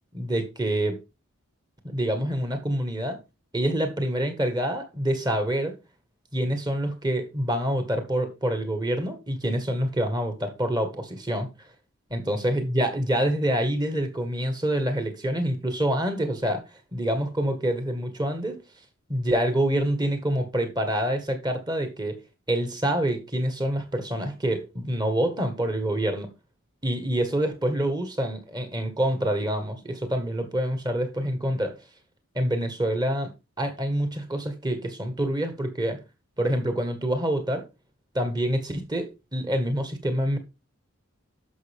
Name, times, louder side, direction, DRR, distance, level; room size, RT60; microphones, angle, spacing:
voice 1, 0.1-1.0 1.8-3.2 3.5-5.7 6.3-11.5 12.1-16.6 16.9-18.6 19.1-22.2 22.5-26.3 26.8-31.8 32.4-33.3 33.6-36.0 36.4-37.6 38.1-40.4, right 1 dB, 20° right, 1.7 m, -26 dB
11.0 x 6.0 x 3.6 m
head